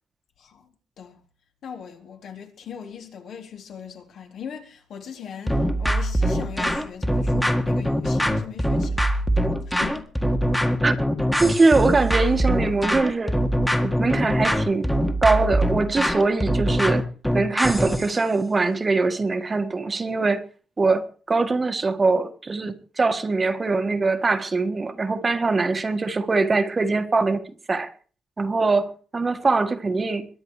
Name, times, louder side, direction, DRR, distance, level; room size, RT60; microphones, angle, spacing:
voice 1, 0.4-0.7 1.0-1.2 1.6-9.3 9.7-10.1, left 7 dB, 70° left, 3.8 m, -39 dB
sound 1, 5.5-18.1, equal, 5° left, 1.7 m, -23 dB
voice 2, 11.4-13.3 13.8-14.9 15.2-17.1 17.3-20.4 20.8-27.4 27.7-27.9 28.4-30.3, right 3 dB, 25° right, 1.6 m, -22 dB
22.0 x 9.5 x 4.9 m
cardioid pair, 105°, 0 cm